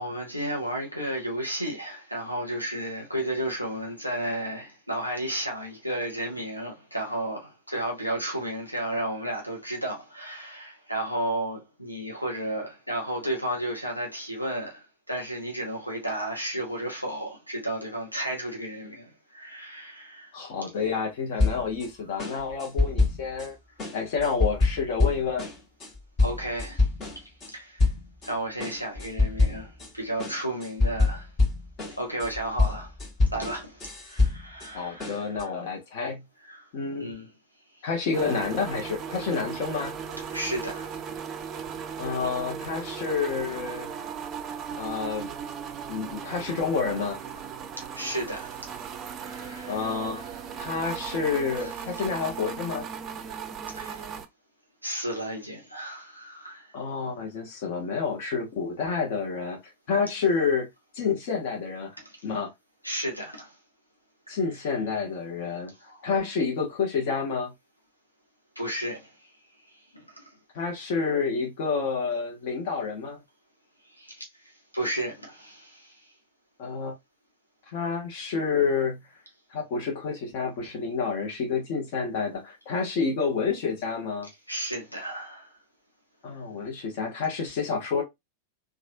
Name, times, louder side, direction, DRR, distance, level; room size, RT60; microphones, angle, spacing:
voice 1, 0.0-20.3 22.1-22.2 26.2-26.9 27.2-27.9 28.2-31.3 31.9-33.0 33.3-35.5 36.4-36.7 37.0-37.3 37.7-37.9 40.3-41.0 41.8-41.9 47.9-48.9 49.2-50.7 51.5-51.9 53.7-54.2 54.8-56.8 62.0-62.3 62.8-63.6 64.3-64.4 65.7-66.0 68.6-70.4 73.8-76.1 84.5-85.6, right 1 dB, 90° left, 0.7 m, -33 dB
voice 2, 20.3-23.5 23.9-25.5 34.7-36.2 36.7-37.1 37.8-39.9 42.0-43.9 44.8-45.3 45.9-47.2 49.7-50.2 50.6-52.8 56.7-59.6 59.9-60.7 60.9-61.9 62.2-62.5 64.3-65.7 66.0-67.5 70.5-73.2 76.6-77.0 77.7-79.0 79.5-84.3 86.2-88.0, left 5 dB, 50° left, 1.1 m, -29 dB
sound 1, 21.4-21.9 22.2-23.5 23.8-27.5 27.8-28.3 28.6-29.9 30.2-34.7 35.0-35.4, left 3 dB, 30° left, 1.3 m, -26 dB
sound 2, 38.1-54.3, right 7 dB, 30° right, 0.5 m, -37 dB
3.1 x 2.4 x 2.6 m
figure-of-eight pair, 90°, 0 cm